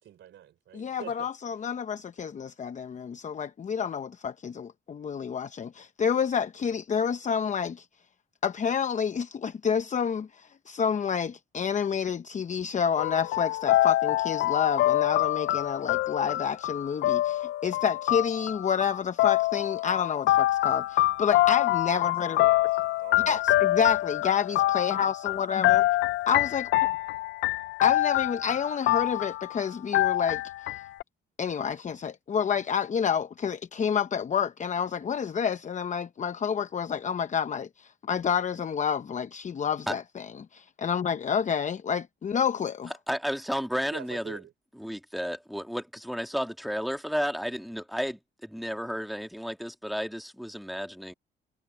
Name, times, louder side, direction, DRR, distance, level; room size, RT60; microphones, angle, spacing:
voice 1, 0.0-1.7 21.9-23.5 43.9-44.5, right 11 dB, 70° right, 3.8 m, -46 dB
voice 2, 0.7-7.8 8.4-10.3 10.7-22.4 23.3-25.8 26.3-26.6 27.8-30.4 31.4-37.7 38.1-40.0 40.5-42.9, left 7 dB, 40° left, 0.8 m, -29 dB
sound 1, 13.0-29.6 29.9-31.0, left 15 dB, 70° left, 0.4 m, -26 dB
voice 3, 43.1-44.4 44.8-51.1, equal, ahead, 2.0 m, -32 dB
cardioid pair, 90°, 20 cm